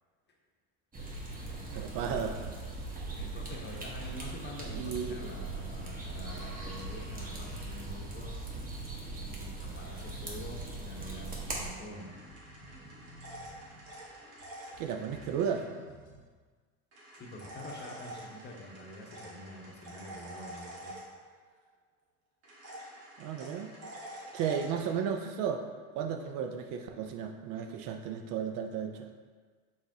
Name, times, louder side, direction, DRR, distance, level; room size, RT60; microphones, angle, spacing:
sound 1, 0.9-11.7, right 2 dB, 20° right, 1.0 m, -40 dB
voice 1, 1.7-2.4 4.7-5.2 14.8-15.7 23.2-23.7 24.3-25.6 26.0-29.1, right 7 dB, 55° right, 5 dB, 0.5 m, -34 dB
voice 2, 3.2-8.4 9.2-12.1 17.1-21.0, left 1 dB, 25° left, 0 dB, 0.8 m, -46 dB
sound 2, 5.7-16.2, equal, 90° left, 1.3 m, -55 dB
sound 3, 11.9-15.7 16.9-21.5 22.4-24.9, right 1 dB, 75° right, 1.5 m, -48 dB
5.0 x 3.4 x 2.7 m, 1.5 s
hypercardioid pair, 80°, 40 cm